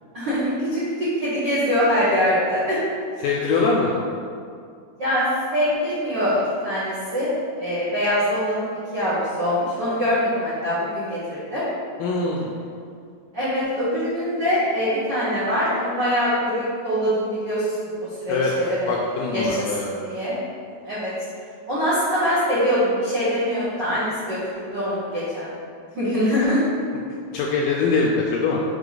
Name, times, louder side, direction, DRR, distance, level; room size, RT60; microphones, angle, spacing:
voice 1, 0.1-2.8 5.0-5.2 5.5-7.3 7.6-11.6 13.3-18.9 19.3-20.3 20.8-21.1 21.7-25.5 25.9-26.6, equal, 75° right, -12 dB, 1.0 m, -23 dB
voice 2, 3.2-3.9 12.0-12.5 18.3-18.5 18.9-19.9 27.3-28.6, left 4 dB, 85° left, -2 dB, 2.0 m, -22 dB
5.9 x 5.3 x 3.9 m, 2.3 s
omnidirectional pair, 4.4 m